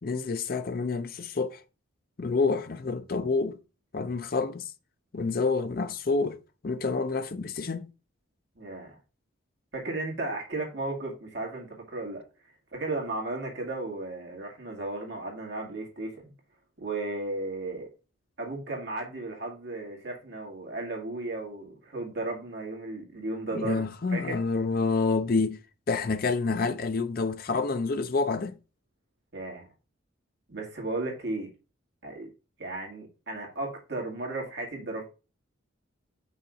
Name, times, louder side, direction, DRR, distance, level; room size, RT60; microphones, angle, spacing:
voice 1, 0.0-1.6 2.2-3.6 3.9-4.7 5.1-7.9 23.5-25.6 25.9-28.6, left 4 dB, 45° left, 0.5 m, -28 dB
voice 2, 8.6-9.0 9.7-12.2 12.7-16.3 16.8-17.9 18.4-24.4 29.3-29.7 30.5-31.5 32.0-32.3 32.6-35.1, right 2 dB, 55° right, 2.1 m, -35 dB
5.6 x 3.7 x 5.1 m
head